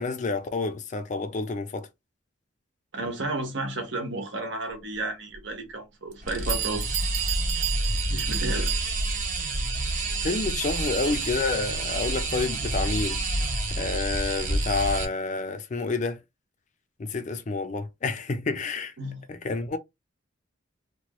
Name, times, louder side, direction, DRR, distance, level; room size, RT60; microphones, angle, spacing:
voice 1, 0.0-1.9 10.2-13.2 13.8-16.2 17.0-18.9 19.3-19.8, left 3 dB, 40° left, 0.4 m, -29 dB
voice 2, 2.9-6.8 8.1-8.7 19.0-19.2, right 2 dB, 65° right, 1.0 m, -32 dB
Bell, 5.3-5.4 6.1-6.2 6.5-9.3, right 13 dB, 80° right, 0.5 m, -32 dB
sound 1, 6.2-15.0, right 2 dB, 40° right, 0.9 m, -28 dB
2.9 x 2.3 x 2.9 m
head